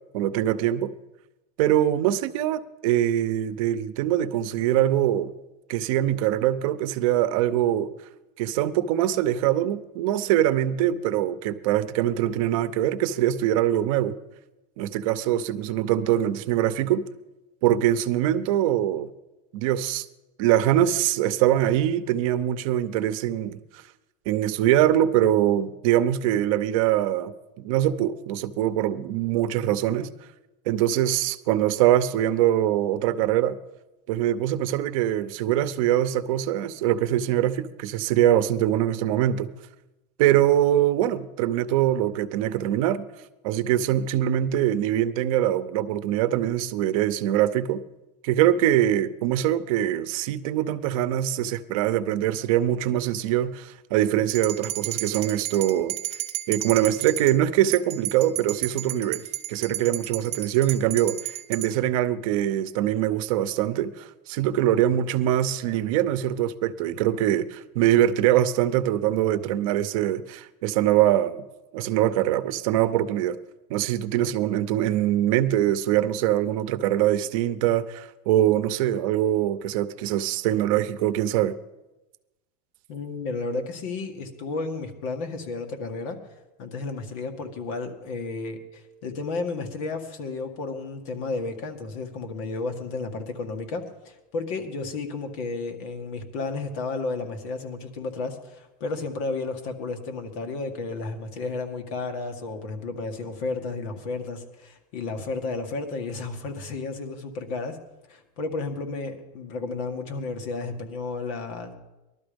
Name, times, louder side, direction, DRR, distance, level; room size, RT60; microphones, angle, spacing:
voice 1, 0.1-0.9 1.6-5.3 5.7-7.9 8.4-14.2 14.8-17.0 17.6-19.1 19.5-20.0 20.4-23.8 24.3-30.1 30.7-33.6 34.1-39.5 40.2-43.0 43.4-47.8 48.2-56.0 56.5-71.5 71.7-73.4 73.7-81.5, right 12 dB, 60° right, 0.8 m, -23 dB
sound 1, 54.3-57.3 57.7-61.7, right 15 dB, 30° right, 1.2 m, -33 dB
voice 2, 82.9-86.2 86.6-107.8 108.1-111.7, left 3 dB, 60° left, 2.0 m, -32 dB
19.5 x 12.5 x 5.2 m
supercardioid pair, 180°, 19 cm